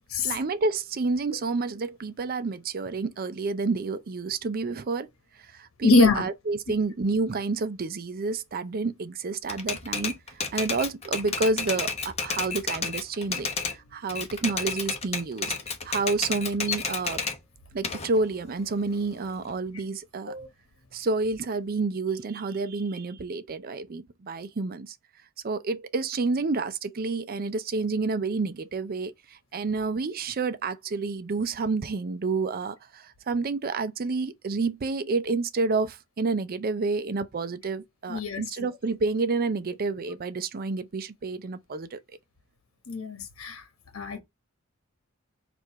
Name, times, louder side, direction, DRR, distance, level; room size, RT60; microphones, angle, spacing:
voice 1, 0.2-5.1 5.4-10.1 10.5-15.5 15.8-17.2 17.7-20.3 20.9-25.0 25.4-42.0, right 3 dB, 45° right, 0.5 m, -29 dB
voice 2, 5.8-6.2 17.2-17.3 20.3-20.5 38.1-38.4 42.9-43.6 43.9-44.2, left 3 dB, 80° left, 1.1 m, -23 dB
Typewriter, 9.5-13.8 14.1-17.4 17.8-19.5, left 5 dB, 30° left, 0.9 m, -31 dB
4.6 x 2.6 x 4.5 m
head